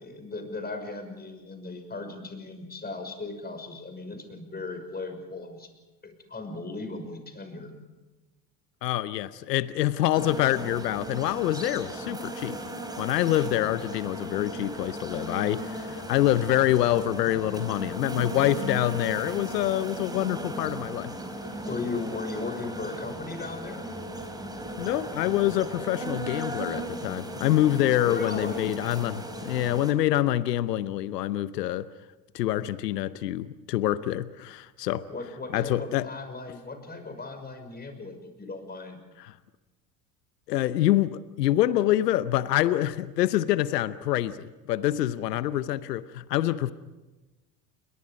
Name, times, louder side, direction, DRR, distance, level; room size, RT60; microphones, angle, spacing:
voice 1, 0.0-5.7 6.0-7.7 21.6-23.9 28.0-28.7 35.1-39.0, left 3 dB, 20° left, 6.0 m, -37 dB
voice 2, 8.8-12.6 13.0-21.1 24.8-31.9 32.3-35.1 35.5-36.1 40.5-46.7, left 13 dB, 80° left, 0.9 m, -26 dB
sound 1, 10.1-29.9, right 1 dB, 10° right, 4.2 m, -37 dB
29.5 x 22.5 x 5.2 m
hypercardioid pair, 80°, 48 cm